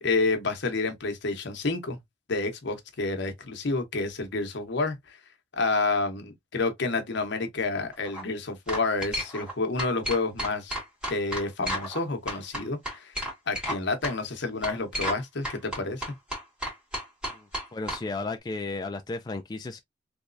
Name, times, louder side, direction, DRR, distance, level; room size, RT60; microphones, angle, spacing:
voice 1, 0.0-2.0 2.3-5.2 5.5-10.8 11.1-13.1 13.5-16.0, left 3 dB, 65° left, 0.9 m, -29 dB
sound 1, 7.9-8.2 8.7-9.5 9.8-12.0 12.3-13.8 14.0-14.1 14.6-15.2 15.4-18.0, equal, 5° right, 1.8 m, -32 dB
voice 2, 17.3-19.8, left 3 dB, 20° left, 0.3 m, -34 dB
3.5 x 3.1 x 2.5 m
head